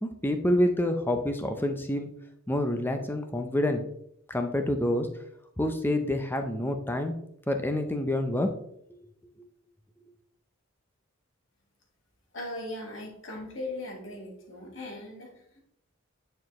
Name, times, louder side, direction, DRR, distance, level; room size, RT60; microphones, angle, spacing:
voice 1, 0.0-2.1 2.5-3.8 4.3-5.1 5.6-7.2 7.5-8.5, left 1 dB, 10° left, 6 dB, 0.6 m, -27 dB
voice 2, 12.3-15.6, left 1 dB, 65° left, -1 dB, 1.9 m, -39 dB
9.3 x 4.5 x 3.1 m, 0.73 s
head